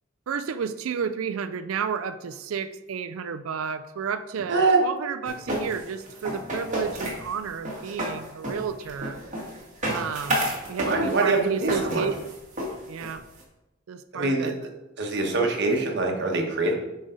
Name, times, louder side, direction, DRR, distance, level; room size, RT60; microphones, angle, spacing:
voice 1, 0.3-9.2 9.9-12.1 12.9-13.2 13.9-14.5, right 6 dB, 85° right, 11 dB, 0.4 m, -31 dB
sound 1, 5.3-13.4, right 1 dB, 40° right, 2.1 m, -31 dB
voice 2, 10.9-12.0 14.1-14.5 15.0-16.7, right 3 dB, 60° right, 1 dB, 1.4 m, -24 dB
8.8 x 5.1 x 3.9 m, 1.0 s
head